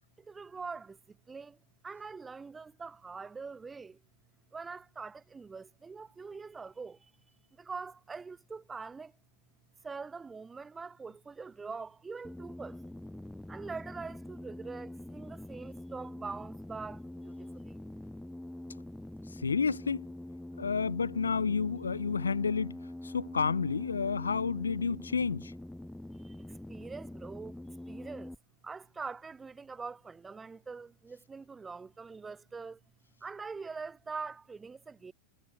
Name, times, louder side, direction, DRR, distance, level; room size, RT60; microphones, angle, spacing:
voice 1, 0.3-1.0 1.3-1.5 1.8-3.9 4.5-7.0 7.7-9.1 9.8-12.8 13.5-17.3 26.7-27.5 27.9-28.3 28.6-32.8 33.2-35.1, right 4 dB, 15° right, 2.8 m, -43 dB
sound 1, 12.2-28.4, left 1 dB, 5° left, 1.7 m, -45 dB
voice 2, 19.4-20.0 20.6-22.7 23.0-25.5, left 5 dB, 75° left, 0.5 m, -30 dB
figure-of-eight pair, 90°, 0 cm